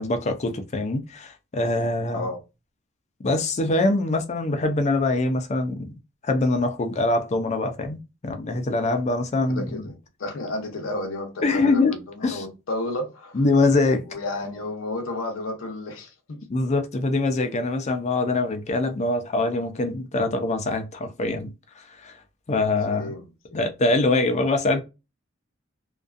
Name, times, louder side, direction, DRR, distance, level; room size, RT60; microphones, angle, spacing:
voice 1, 0.0-2.3 3.2-5.9 6.2-9.9 11.4-12.0 12.2-12.4 13.3-14.0 16.5-22.1 22.5-23.1 23.5-24.8, left 2 dB, 35° left, 0.5 m, -24 dB
voice 2, 9.5-13.4 14.1-16.5 22.9-23.6, left 2 dB, 85° left, 0.6 m, -32 dB
2.5 x 2.3 x 2.4 m
head